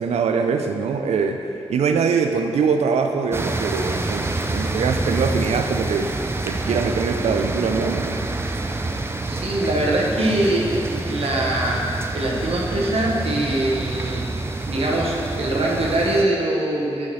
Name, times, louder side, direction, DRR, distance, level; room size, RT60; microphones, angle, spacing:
voice 1, 0.0-6.2 6.4-8.2, right 5 dB, 90° right, 5 dB, 0.4 m, -23 dB
sound 1, 3.3-16.2, right 2 dB, 25° right, 0.4 m, -27 dB
voice 2, 9.0-11.9 12.1-14.3 14.7-17.1, right 1 dB, 70° right, -3 dB, 0.9 m, -23 dB
6.1 x 5.7 x 3.0 m, 2.7 s
cardioid pair, 50°, 11 cm